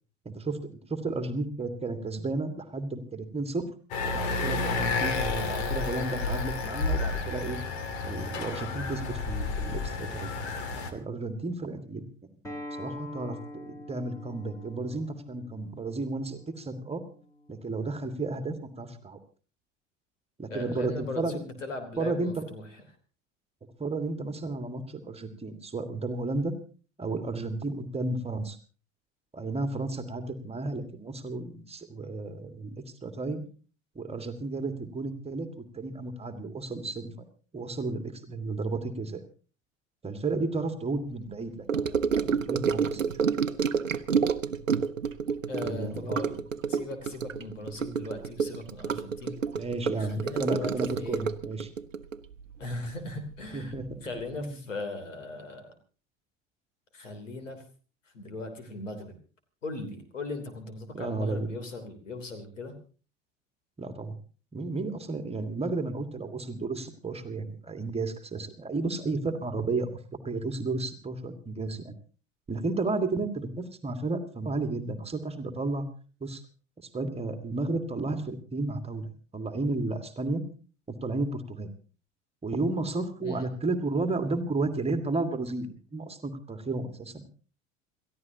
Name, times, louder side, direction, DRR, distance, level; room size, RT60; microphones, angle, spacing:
voice 1, 0.3-0.6 0.9-3.7 4.1-7.6 8.0-10.3 10.9-12.1 12.8-17.0 17.5-19.2 20.4-21.4 22.0-22.5 23.8-26.5 27.0-28.6 29.3-32.8 33.0-33.4 34.0-37.1 37.5-39.2 40.0-43.2 45.6-46.2 49.6-51.7 53.5-54.0 54.3-54.6 60.9-61.5 63.8-64.1 64.5-69.9 70.2-72.0 72.5-75.8 76.2-76.4 76.9-79.1 79.3-80.4 81.0-81.7 82.4-87.2, right 3 dB, 15° right, 8 dB, 1.9 m, -33 dB
sound 1, 3.9-10.9, left 3 dB, 60° left, 2.5 m, -31 dB
Acoustic guitar, 12.4-17.6, left 1 dB, 5° left, 3.1 m, -44 dB
voice 2, 20.5-22.7 45.5-46.4 46.7-49.4 50.0-51.2 52.6-53.7 54.0-55.7 56.9-57.6 58.1-59.1 59.6-62.7 83.2-83.5, left 2 dB, 75° left, 7 dB, 3.3 m, -38 dB
Gurgling / Sink (filling or washing) / Trickle dribble, 41.7-53.3 53.6-53.9 54.2-54.3, right 6 dB, 85° right, 0.8 m, -29 dB
28.0 x 14.5 x 2.8 m, 0.37 s
figure-of-eight pair, 70°, 38 cm